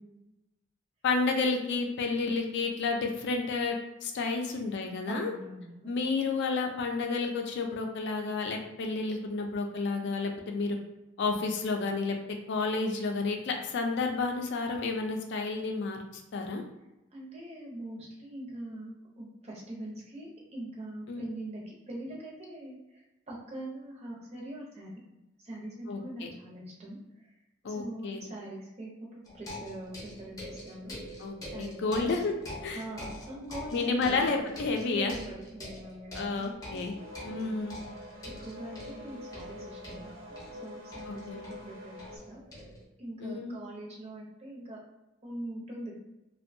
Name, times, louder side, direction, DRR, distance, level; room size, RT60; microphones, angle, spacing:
voice 1, 1.0-5.3 5.8-10.8 11.2-12.2 12.5-16.6 21.1-21.2 25.9-26.3 27.6-28.3 31.2-32.3 32.6-32.8 33.7-35.2 36.1-36.9 37.2-37.8 41.1-41.4 43.2-43.6, left 3 dB, 60° left, 3 dB, 0.4 m, -31 dB
voice 2, 5.1-5.9 17.1-25.0 25.4-27.3 27.6-31.0 31.5-32.2 32.7-34.3 34.8-37.7 38.4-42.7 43.0-44.8 45.2-45.9, right 1 dB, 35° right, -3 dB, 0.7 m, -43 dB
sound 1, 29.3-42.8, left 1 dB, 20° left, 0.6 m, -45 dB
sound 2, 37.0-42.2, left 1 dB, 75° right, 0.6 m, -46 dB
2.6 x 2.2 x 2.6 m, 0.97 s
head